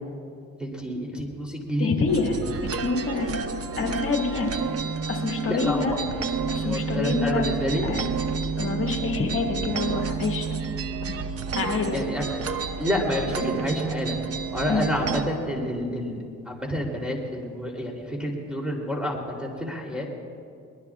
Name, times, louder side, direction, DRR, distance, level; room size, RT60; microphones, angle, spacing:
voice 1, 0.6-1.9 5.5-6.0 6.6-7.9 11.9-12.4 12.8-14.2 14.5-16.2 16.4-20.1, equal, 5° right, 0 dB, 3.2 m, -29 dB
voice 2, 1.8-2.4 2.7-3.4 3.8-4.5 5.1-6.0 6.5-7.5 7.8-8.0 8.6-10.5 11.6-12.0 14.7-14.8, left 4 dB, 45° left, 0 dB, 2.0 m, -26 dB
sound 1, 2.1-15.2, right 5 dB, 50° right, 1.0 m, -30 dB
23.5 x 20.5 x 2.4 m, 2.4 s
cardioid pair, 90°, 30 cm